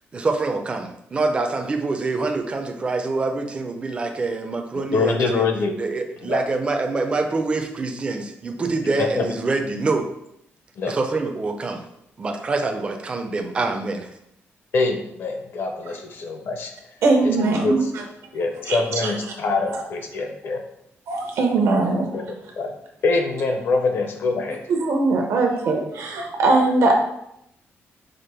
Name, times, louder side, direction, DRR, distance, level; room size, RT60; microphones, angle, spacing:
voice 1, 0.1-5.4 5.8-10.1 10.8-11.8 12.2-14.1, right 3 dB, 25° right, 5 dB, 0.4 m, -25 dB
voice 2, 4.7-5.7 6.2-6.5 9.0-9.3 10.8-11.0 14.7-16.7 17.2-17.9 18.3-20.6 21.9-22.7 23.0-24.6, left 3 dB, 55° left, 5 dB, 0.6 m, -24 dB
voice 3, 17.0-18.0 18.7-19.1 19.7-19.8 21.1-22.2 24.7-26.9, right 3 dB, 80° right, 1 dB, 0.9 m, -20 dB
5.0 x 2.1 x 4.3 m, 0.77 s
wide cardioid pair, 180°, 5 cm